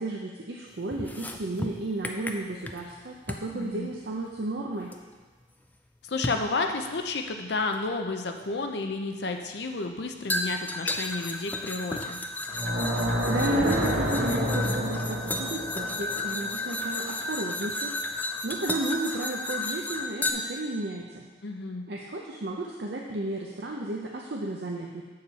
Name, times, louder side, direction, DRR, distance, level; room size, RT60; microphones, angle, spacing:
voice 1, 0.0-4.9 13.3-17.9 18.4-21.3 21.9-25.0, right 2 dB, 60° right, -1 dB, 0.6 m, -33 dB
sound 1, 0.9-2.9 3.3-3.5 4.9-5.0 6.2-6.5 7.7-7.8 10.3-20.3, left 2 dB, 10° left, 0.3 m, -33 dB
voice 2, 3.5-3.9 6.0-12.2 21.4-21.8, left 3 dB, 65° left, 5 dB, 0.6 m, -31 dB
sound 2, 12.4-17.6, equal, 90° right, 1.4 m, -29 dB
7.0 x 6.6 x 4.2 m, 1.3 s
head